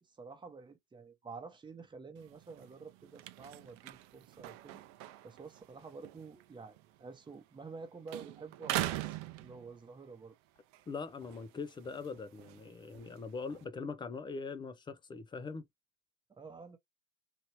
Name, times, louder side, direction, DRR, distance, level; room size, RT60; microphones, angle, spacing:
voice 1, 0.0-4.8 5.2-10.3 16.3-16.8, right 4 dB, 10° right, 1.0 m, -49 dB
sound 1, 2.2-7.8 8.1-10.1 10.6-13.6, right 15 dB, 45° right, 0.5 m, -43 dB
voice 2, 10.9-15.6, left 4 dB, 15° left, 0.4 m, -42 dB
2.9 x 2.9 x 2.9 m
hypercardioid pair, 100°, 38 cm